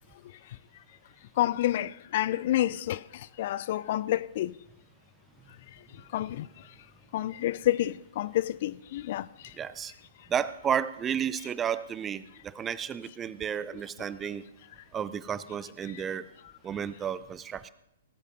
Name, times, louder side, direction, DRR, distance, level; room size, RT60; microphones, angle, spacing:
voice 1, 1.4-4.6 6.1-6.5 7.1-9.5, left 13 dB, 50° left, 0.4 m, -29 dB
voice 2, 9.6-9.9 10.3-14.4 14.9-16.3 16.6-17.7, right 8 dB, 20° right, 0.6 m, -32 dB
18.5 x 8.2 x 5.5 m
hypercardioid pair, 120°, 0 cm